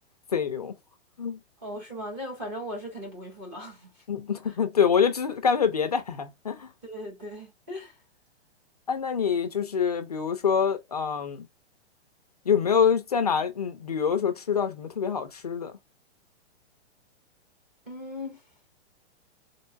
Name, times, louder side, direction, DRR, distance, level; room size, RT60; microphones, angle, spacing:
voice 1, 0.3-0.8 1.2-1.4 4.1-6.7 8.9-11.5 12.5-15.7, left 7 dB, 35° left, 0.4 m, -25 dB
voice 2, 1.6-4.0 4.5-4.6 6.8-8.0 17.9-18.5, equal, 10° right, 0.6 m, -38 dB
3.8 x 2.2 x 2.4 m
hypercardioid pair, 175°, 34 cm